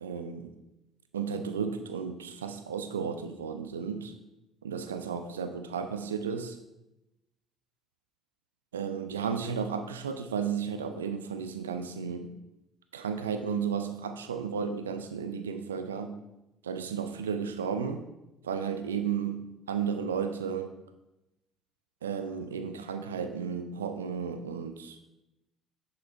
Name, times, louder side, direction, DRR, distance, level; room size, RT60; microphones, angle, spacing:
voice 1, 0.0-0.5 1.1-4.1 4.6-6.6 8.7-12.3 12.9-16.2 16.6-18.0 18.4-20.7 22.0-25.0, right 6 dB, 85° right, 8 dB, 0.4 m, -33 dB
6.8 x 6.6 x 4.4 m, 0.94 s
hypercardioid pair, 55°, 0 cm